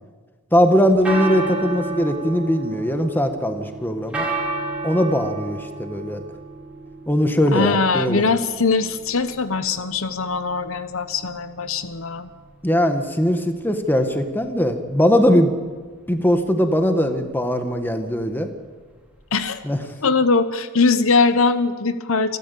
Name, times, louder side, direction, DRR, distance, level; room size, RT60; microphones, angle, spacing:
voice 1, 0.5-4.3 4.8-6.2 7.1-8.2 12.6-15.5 16.1-18.5 19.6-19.8, equal, 10° left, 6 dB, 1.6 m, -20 dB
sound 1, 0.7-19.7, right 2 dB, 5° right, 4.2 m, -33 dB
voice 2, 7.5-12.3 19.3-19.6 20.0-22.4, left 4 dB, 65° left, 11 dB, 1.0 m, -21 dB
28.0 x 13.0 x 8.5 m, 1.5 s
head